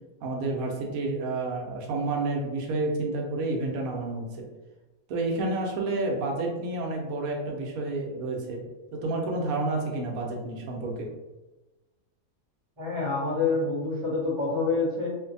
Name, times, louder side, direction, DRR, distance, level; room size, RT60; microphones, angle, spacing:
voice 1, 0.2-4.4 5.1-8.6 8.9-11.1, right 2 dB, 75° right, 0 dB, 1.0 m, -30 dB
voice 2, 12.8-15.1, left 3 dB, 25° right, -6 dB, 0.7 m, -27 dB
2.6 x 2.5 x 2.5 m, 1.1 s
omnidirectional pair, 1.5 m